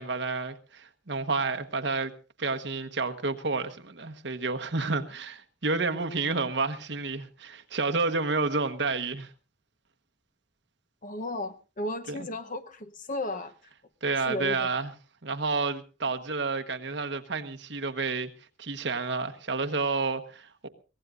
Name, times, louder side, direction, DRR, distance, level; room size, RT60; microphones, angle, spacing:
voice 1, 0.0-2.1 2.4-9.3 12.1-12.3 14.0-14.9 15.2-18.3 18.6-20.7, right 3 dB, 60° right, 1.2 m, -30 dB
voice 2, 11.0-13.5 14.3-14.7, left 1 dB, 40° left, 0.9 m, -34 dB
23.5 x 17.5 x 2.5 m
head